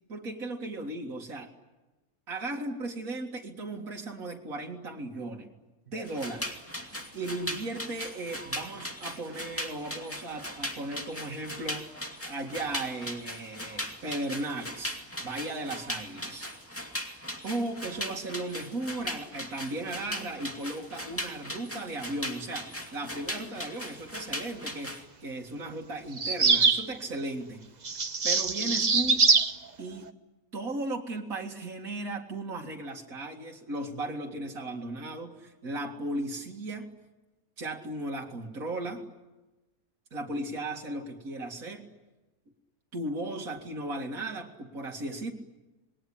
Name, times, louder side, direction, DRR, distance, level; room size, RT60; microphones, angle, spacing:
voice 1, 0.1-1.5 2.3-5.5 5.9-6.5 6.9-16.5 17.4-27.7 28.2-29.2 29.8-30.1 30.5-36.9 37.6-39.1 40.1-41.9 42.9-45.3, right 2 dB, 70° right, 0 dB, 2.7 m, -36 dB
sound 1, 6.0-25.0, equal, 10° left, 2.3 m, -39 dB
sound 2, 26.2-26.9 27.8-29.5, right 4 dB, 30° right, 1.1 m, -23 dB
27.5 x 21.5 x 10.0 m, 1.1 s
omnidirectional pair, 1.5 m